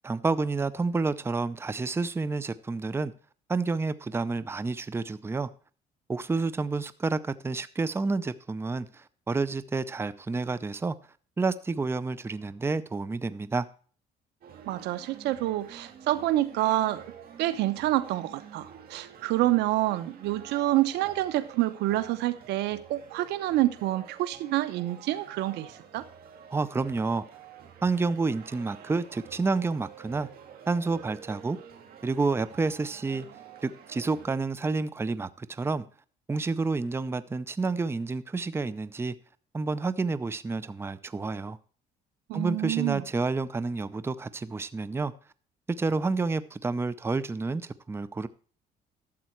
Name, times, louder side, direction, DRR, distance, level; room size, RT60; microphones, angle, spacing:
voice 1, 0.0-3.1 3.5-5.5 6.1-11.0 11.4-13.7 26.5-27.2 27.8-30.3 30.7-31.6 32.0-33.3 33.6-35.8 36.3-39.1 39.5-41.6 42.3-45.1 45.7-48.3, right 3 dB, 15° right, 0.6 m, -29 dB
sound 1, 14.4-34.3, right 8 dB, 65° right, 2.1 m, -49 dB
voice 2, 14.7-17.0 17.4-26.0 42.3-43.0, right 15 dB, 85° right, 0.9 m, -27 dB
12.5 x 7.5 x 4.5 m
cardioid pair, 110°, 17 cm